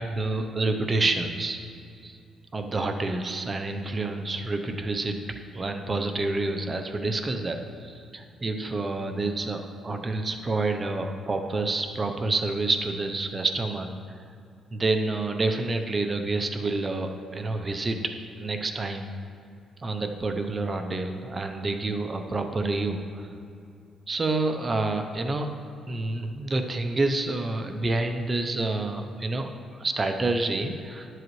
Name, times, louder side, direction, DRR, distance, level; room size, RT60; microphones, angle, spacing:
voice 1, 0.0-1.6 2.0-2.2 2.5-5.2 5.5-13.9 14.7-19.1 19.8-23.3 24.1-25.5 25.9-31.1, right 2 dB, 30° right, 6 dB, 0.7 m, -28 dB
12.0 x 7.8 x 3.1 m, 2.5 s
cardioid pair, 90°, 0 cm